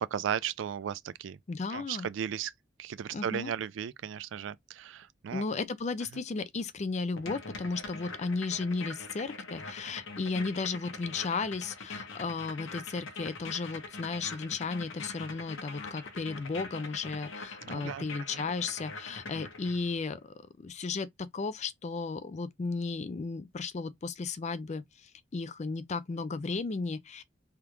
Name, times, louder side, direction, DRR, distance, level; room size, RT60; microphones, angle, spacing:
voice 1, 0.0-1.4 1.7-2.5 2.8-5.5 17.6-18.1 18.3-18.5, right 8 dB, 70° right, 0.3 m, -35 dB
voice 2, 1.5-2.1 3.1-3.5 5.3-20.2 20.6-27.2, left 4 dB, 35° left, 0.4 m, -34 dB
sound 1, 7.2-20.0, left 3 dB, 85° left, 0.9 m, -43 dB
3.5 x 2.3 x 2.9 m
head